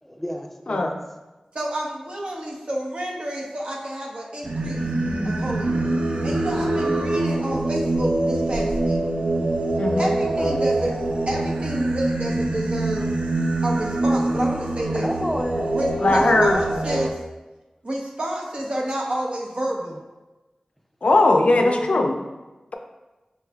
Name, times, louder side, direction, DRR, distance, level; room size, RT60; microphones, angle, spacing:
voice 1, 0.0-1.0 10.2-10.6 14.2-14.4 14.9-15.7 16.0-16.4 21.4-22.3, equal, 5° left, 3 dB, 0.5 m, -30 dB
voice 2, 1.5-4.8 5.2-9.0 10.0-10.9 11.3-13.1 13.6-15.1 15.7-17.2 17.8-20.0, right 1 dB, 55° right, -2 dB, 0.8 m, -29 dB
Singing, 4.4-17.1, right 2 dB, 75° right, 0.4 m, -24 dB
voice 3, 9.8-10.1 16.0-16.6 21.0-22.1, left 2 dB, 75° left, 4 dB, 0.4 m, -18 dB
5.4 x 3.1 x 2.3 m, 1.1 s
wide cardioid pair, 55°, 2 cm